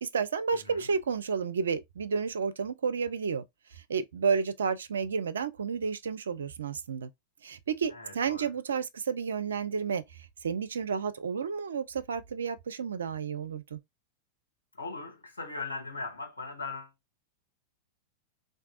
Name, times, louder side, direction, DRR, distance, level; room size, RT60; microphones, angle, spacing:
voice 1, 0.0-3.4 3.7-7.1 7.4-10.0 10.4-13.8, right 6 dB, 65° right, 0.4 m, -31 dB
voice 2, 0.5-0.9 7.9-8.5 14.8-16.9, left 3 dB, 80° left, 1.1 m, -39 dB
3.4 x 2.6 x 2.3 m
figure-of-eight pair, 90°, 0 cm